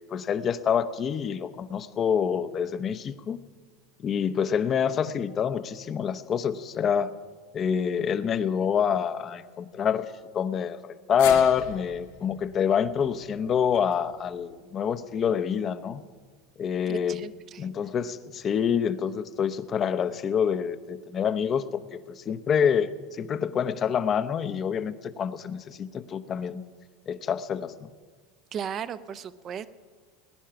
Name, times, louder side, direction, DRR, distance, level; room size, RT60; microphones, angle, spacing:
voice 1, 0.0-3.4 4.0-7.1 7.5-10.1 10.3-16.0 16.6-17.2 17.6-26.6 27.1-27.9, left 7 dB, 35° left, 12 dB, 0.8 m, -27 dB
sound 1, 11.2-15.4 15.8-15.9 17.1-17.2, left 8 dB, 75° left, 2.2 m, -41 dB
voice 2, 16.9-17.7 28.5-29.7, right 8 dB, 40° right, 14 dB, 0.8 m, -36 dB
19.5 x 10.0 x 5.9 m, 1.5 s
hypercardioid pair, 95°, 0 cm